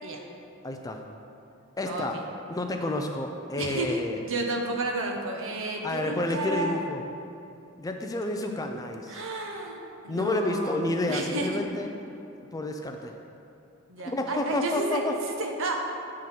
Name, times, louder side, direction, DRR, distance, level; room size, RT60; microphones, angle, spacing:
voice 1, 0.6-1.0 1.8-2.2 2.5-4.2 5.8-7.0 7.8-9.2 10.1-11.9 12.5-13.1 14.1-15.2, left 2 dB, 15° left, 4 dB, 0.4 m, -30 dB
voice 2, 1.8-2.2 3.6-6.8 9.1-11.6 13.9-15.0 15.4-15.8, right 2 dB, 60° right, 1 dB, 0.9 m, -32 dB
9.2 x 3.7 x 5.7 m, 2.7 s
head